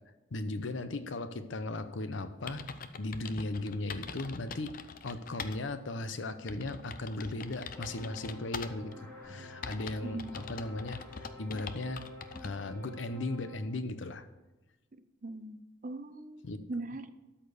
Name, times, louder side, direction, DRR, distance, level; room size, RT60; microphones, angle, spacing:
voice 1, 0.3-2.7 3.0-4.8 5.0-12.0 12.4-14.3 16.4-16.7, left 2 dB, 85° left, 11 dB, 0.8 m, -37 dB
sound 1, 2.0-2.1 2.5-5.6 6.0-6.1 6.5-8.9 9.6-12.5, left 5 dB, 45° left, 0.5 m, -43 dB
sound 2, 7.7-13.6, left 1 dB, 10° left, 2.1 m, -49 dB
sound 3, 9.2-11.4, left 1 dB, 25° right, 2.7 m, -57 dB
voice 2, 10.0-10.3 15.2-17.1, right 2 dB, 45° right, 11 dB, 0.6 m, -40 dB
12.5 x 4.4 x 6.9 m, 1.1 s
head